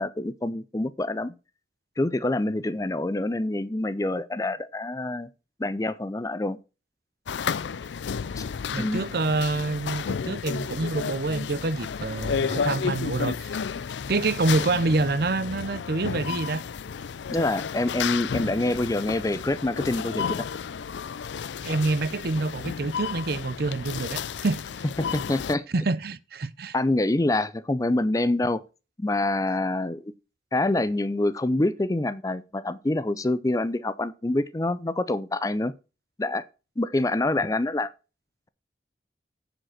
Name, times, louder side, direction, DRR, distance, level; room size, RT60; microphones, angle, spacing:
voice 1, 0.0-1.3 2.0-5.3 5.6-6.6 8.4-8.5 8.8-9.0 17.3-20.5 25.0-25.6 26.7-28.6 29.0-30.1 30.5-35.7 36.2-36.5 36.8-37.9, left 2 dB, 20° left, 0.5 m, -26 dB
sound 1, 7.3-25.5, left 6 dB, 85° left, 0.4 m, -32 dB
voice 2, 8.7-13.5 14.1-16.6 21.6-24.6 25.7-26.7, right 3 dB, 60° right, 0.6 m, -27 dB
10.0 x 5.0 x 6.3 m
head